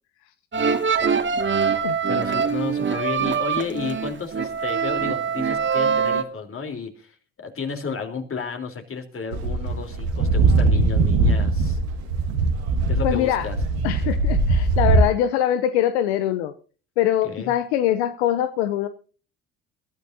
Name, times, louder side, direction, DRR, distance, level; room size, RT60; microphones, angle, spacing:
sound 1, 0.5-6.2, right 6 dB, 35° right, 2.1 m, -23 dB
voice 1, 2.1-11.8 12.9-13.6 17.2-17.5, left 5 dB, 40° left, 5 dB, 3.7 m, -32 dB
sound 2, 9.3-15.0, right 3 dB, 85° right, 2.1 m, -20 dB
voice 2, 13.0-13.5 13.8-16.5 17.0-18.9, left 11 dB, 85° left, 11 dB, 0.7 m, -23 dB
22.0 x 13.5 x 2.7 m, 0.38 s
hypercardioid pair, 60°, 32 cm